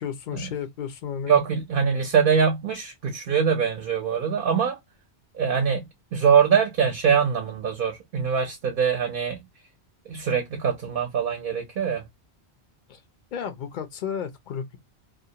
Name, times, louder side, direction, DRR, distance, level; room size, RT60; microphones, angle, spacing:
voice 1, 0.0-1.4 12.9-13.0 13.3-14.8, left 7 dB, 55° left, 0.6 m, -33 dB
voice 2, 1.3-4.8 5.3-5.8 6.1-9.4 10.1-12.0, right 7 dB, 60° right, 0.7 m, -23 dB
2.5 x 2.0 x 2.7 m
omnidirectional pair, 1.1 m